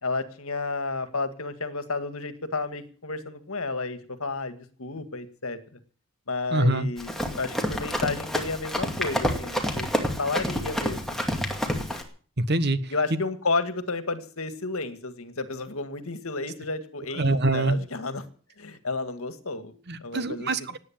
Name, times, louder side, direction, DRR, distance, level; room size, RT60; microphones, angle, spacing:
voice 1, 0.0-5.6 6.3-11.2 12.9-18.3 18.6-19.7 20.0-20.5, left 3 dB, 70° left, 10 dB, 1.9 m, -32 dB
voice 2, 6.5-6.9 12.4-12.9 17.1-17.8 19.9-20.8, right 2 dB, 45° right, 13 dB, 1.2 m, -24 dB
Run, 7.0-12.0, equal, ahead, 2.2 m, -28 dB
18.0 x 9.6 x 7.4 m, 0.43 s
head